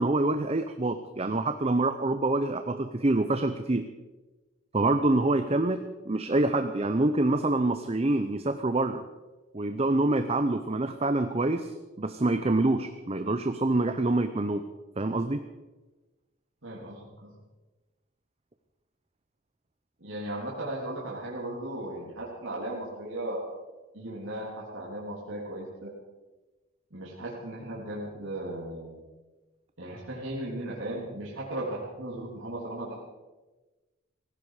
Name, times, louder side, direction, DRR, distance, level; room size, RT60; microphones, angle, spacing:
voice 1, 0.0-3.8 4.7-9.0 9.5-14.7 15.0-15.4, right 2 dB, 30° right, 9 dB, 0.7 m, -26 dB
voice 2, 16.6-17.3 20.0-23.4 23.9-25.9 26.9-29.0 29.8-33.0, right 1 dB, 70° right, -5 dB, 3.4 m, -36 dB
18.0 x 15.5 x 5.0 m, 1.2 s
head